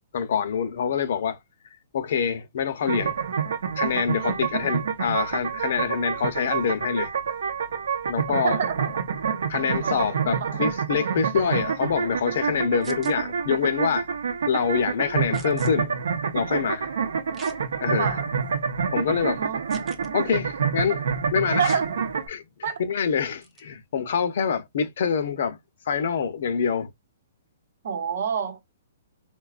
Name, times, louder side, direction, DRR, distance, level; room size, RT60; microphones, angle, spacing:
voice 1, 0.1-1.4 1.9-3.1 3.8-7.1 8.1-8.6 9.5-14.1 14.5-15.9 16.3-16.9 17.8-18.2 18.9-19.4 20.1-21.0 21.3-21.8 22.3-25.6 25.9-26.9, left 7 dB, 55° left, 0.6 m, -26 dB
sound 1, 2.9-22.3, right 6 dB, 85° right, 0.7 m, -28 dB
voice 2, 8.4-8.9 9.8-10.0 10.4-10.6 18.0-18.3 19.4-19.6 21.6-22.0 22.6-22.8 27.8-28.7, right 7 dB, 60° right, 0.8 m, -27 dB
sound 2, 12.8-13.1 15.3-15.7 17.3-17.6 18.2-18.3 19.7-20.1 21.6-21.8 23.4-23.6, right 5 dB, 10° right, 0.4 m, -44 dB
3.9 x 2.2 x 2.4 m
hypercardioid pair, 165°, 0 cm